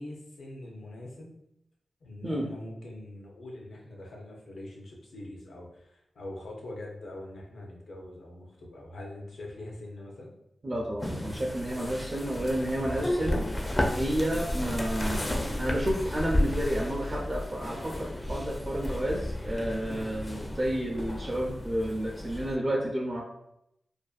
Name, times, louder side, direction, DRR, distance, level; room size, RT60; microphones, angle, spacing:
voice 1, 0.0-1.4 2.0-10.3, left 1 dB, 80° left, -1 dB, 0.6 m, -43 dB
voice 2, 10.6-13.4 13.9-23.2, equal, 45° right, -2 dB, 0.4 m, -31 dB
sound 1, 11.0-22.6, left 1 dB, 30° left, 0.4 m, -32 dB
2.4 x 2.1 x 2.3 m, 0.80 s
cardioid pair, 50°, 0 cm